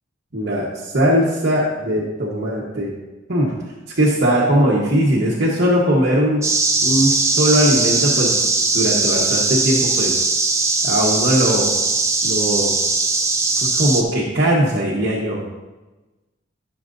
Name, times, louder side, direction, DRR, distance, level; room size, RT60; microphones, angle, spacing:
voice 1, 0.3-2.9 3.3-3.5 4.0-6.4 6.8-8.3 8.7-10.1 10.8-11.7 12.2-12.7 13.6-15.4, equal, 55° right, -5 dB, 1.2 m, -19 dB
sound 1, 6.4-14.0, right 3 dB, 15° right, 0.7 m, -19 dB
13.5 x 6.4 x 2.6 m, 1.2 s
head